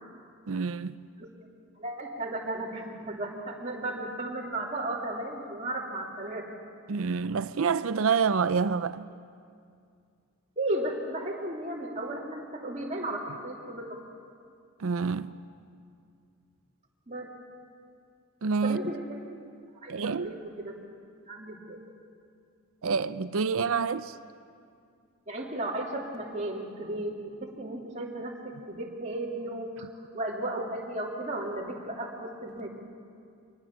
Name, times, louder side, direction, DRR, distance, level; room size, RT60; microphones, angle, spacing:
voice 1, 0.5-1.0 6.9-9.1 14.8-15.3 18.4-18.8 19.9-20.3 22.8-24.1, right 5 dB, 65° right, 0.5 m, -27 dB
voice 2, 1.8-6.5 10.6-14.0 15.2-15.4 17.1-17.3 18.6-19.2 19.8-20.7 21.3-21.8 25.3-29.9 30.1-32.7, right 1 dB, 30° right, 3.0 m, -35 dB
24.5 x 19.5 x 7.5 m
head